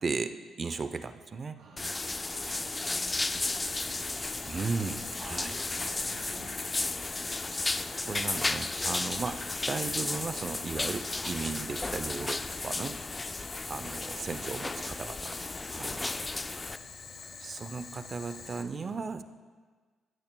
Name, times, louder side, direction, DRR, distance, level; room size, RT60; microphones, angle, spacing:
voice 1, 0.0-1.6 4.4-5.6 7.7-9.4 9.7-13.0 13.7-15.3 15.7-16.2 17.4-19.2, right 4 dB, 40° right, 11 dB, 0.6 m, -36 dB
voice 2, 1.5-4.2 6.0-6.6 14.0-14.1 15.8-16.7 18.8-19.2, right 3 dB, 75° right, -6 dB, 2.7 m, -54 dB
sound 1, 1.8-16.8, left 2 dB, 20° left, 0.3 m, -34 dB
Boiling, 3.4-18.6, left 5 dB, 55° left, 1.3 m, -46 dB
15.5 x 13.0 x 2.3 m, 1.5 s
cardioid pair, 90°, 0 cm